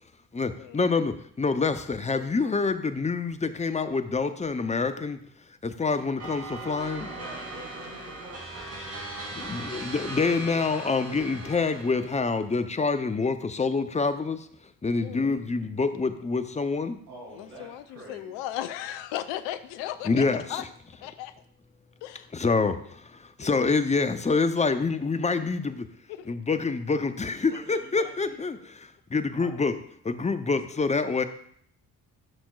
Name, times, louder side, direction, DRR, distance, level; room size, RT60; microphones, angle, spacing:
voice 1, 0.3-5.2 5.6-7.1 9.3-14.5 14.8-17.0 20.0-20.7 22.3-25.9 26.3-29.7 30.0-31.2, left 4 dB, 15° left, 10 dB, 0.7 m, -26 dB
sound 1, 6.2-12.4, right 2 dB, 35° right, 2.6 m, -39 dB
voice 2, 6.9-8.6 17.1-18.3 27.5-28.7 29.4-29.5, right 1 dB, 80° right, -7 dB, 2.9 m, -46 dB
voice 3, 15.0-15.3 17.3-20.6 21.0-21.3 22.0-22.6 26.1-26.3, left 12 dB, 70° left, 12 dB, 0.7 m, -37 dB
12.0 x 6.1 x 2.4 m, 0.64 s
hypercardioid pair, 45°, 46 cm